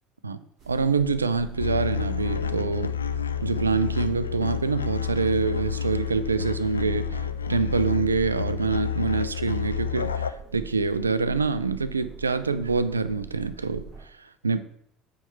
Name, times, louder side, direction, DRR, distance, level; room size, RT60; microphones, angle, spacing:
voice 1, 0.2-3.0 3.4-14.6, right 4 dB, 80° right, 14 dB, 0.4 m, -26 dB
sound 1, 0.6-14.0, right 6 dB, 35° right, 2.0 m, -43 dB
sound 2, 1.6-10.3, left 8 dB, 80° left, 0.3 m, -30 dB
8.9 x 3.3 x 5.6 m, 0.70 s
figure-of-eight pair, 60°, 0 cm